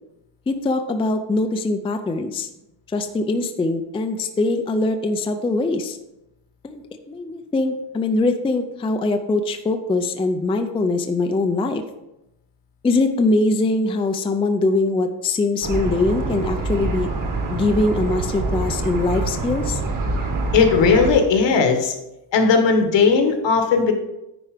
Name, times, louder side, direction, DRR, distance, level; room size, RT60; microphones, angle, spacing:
voice 1, 0.5-2.5 2.9-6.0 6.6-6.8 7.1-11.8 12.8-17.1 17.5-19.8, left 2 dB, 15° left, 6 dB, 0.3 m, -22 dB
sound 1, 15.6-21.1, right 3 dB, 45° right, 1.4 m, -25 dB
voice 2, 20.5-21.9 22.3-23.9, left 5 dB, 75° left, 5 dB, 1.5 m, -17 dB
9.9 x 4.6 x 4.9 m, 0.93 s
wide cardioid pair, 180°, 44 cm